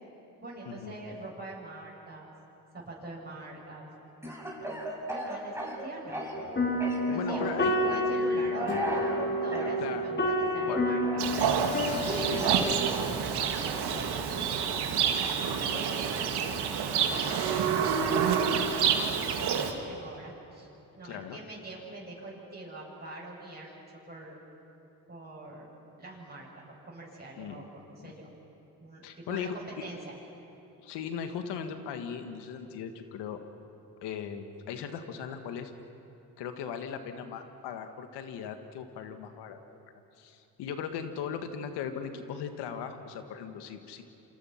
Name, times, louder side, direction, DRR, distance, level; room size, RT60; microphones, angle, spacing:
voice 1, 0.4-2.3 2.7-3.9 4.5-6.2 7.1-11.4 12.0-12.7 13.2-14.8 15.2-16.3 16.9-17.7 18.1-23.7 24.1-24.4 25.1-25.7 26.0-28.3 28.8-30.1, right 2 dB, 25° right, -5 dB, 7.7 m, -44 dB
Speech / Cough, 4.2-6.5 6.8-7.6 8.5-9.7 10.7-13.0, right 2 dB, 5° right, 6.9 m, -36 dB
sound 1, 6.3-12.9, left 1 dB, 30° left, 4.3 m, -30 dB
voice 2, 7.1-7.7 9.8-10.0 10.7-10.8 11.7-12.5 15.0-15.1 15.7-15.8 21.0-21.4 27.4-27.7 28.0-28.1 29.0-29.6 30.8-33.4 34.0-35.7 36.4-39.6 40.2-44.0, left 7 dB, 85° left, 7 dB, 1.8 m, -38 dB
Livestock farm animals working animals, 11.2-19.7, right 7 dB, 75° right, 2.0 m, -28 dB
28.5 x 25.0 x 5.9 m, 2.9 s
supercardioid pair, 60°, 40 cm